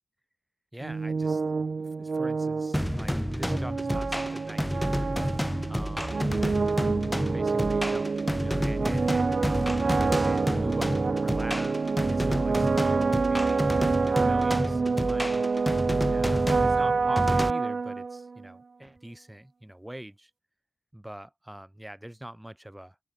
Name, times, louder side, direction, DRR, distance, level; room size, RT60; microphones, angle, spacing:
voice 1, 0.7-6.4 7.3-9.4 10.2-15.4 16.1-20.3 20.9-23.0, right 1 dB, 10° right, 4.5 m, -43 dB
sound 1, 0.8-18.5, right 4 dB, 70° right, 0.8 m, -27 dB
sound 2, 2.7-17.5, equal, 5° left, 3.0 m, -30 dB
wide cardioid pair, 85°, 0 cm